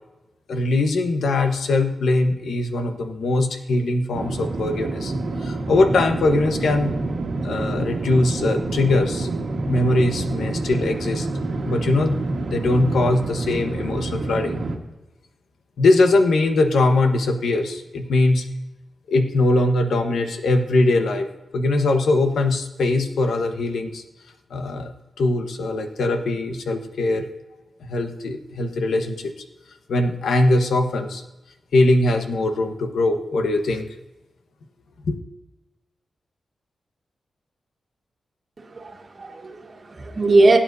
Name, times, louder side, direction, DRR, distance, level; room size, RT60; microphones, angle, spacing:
voice 1, 0.5-5.1 5.4-6.9 7.4-9.3 9.7-11.3 11.6-14.6 15.8-18.5 19.1-21.3 21.5-24.0 24.5-27.3 27.9-29.3 29.9-31.2 31.7-33.9 35.1-35.2, left 2 dB, 90° left, 6 dB, 1.1 m, -21 dB
sound 1, 4.1-14.8, right 2 dB, 65° right, 1.5 m, -27 dB
voice 2, 38.6-40.6, right 2 dB, 40° right, 2 dB, 1.6 m, -20 dB
17.5 x 8.8 x 2.7 m, 1.0 s
wide cardioid pair, 95°, 0 cm